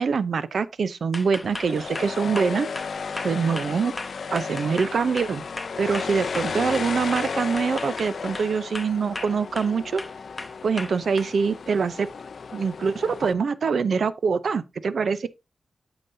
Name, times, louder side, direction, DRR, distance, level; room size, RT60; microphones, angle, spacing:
voice 1, 0.0-2.7 3.2-3.9 4.3-5.5 5.8-10.0 10.6-12.1 12.5-15.3, right 5 dB, 75° right, 0.6 m, -24 dB
sound 1, 1.1-6.9 7.2-8.5 8.7-9.7 10.0-11.3, left 2 dB, 25° left, 0.8 m, -36 dB
sound 2, 1.4-13.3, left 5 dB, 70° left, 0.4 m, -34 dB
9.0 x 7.0 x 2.6 m
wide cardioid pair, 95°, 0 cm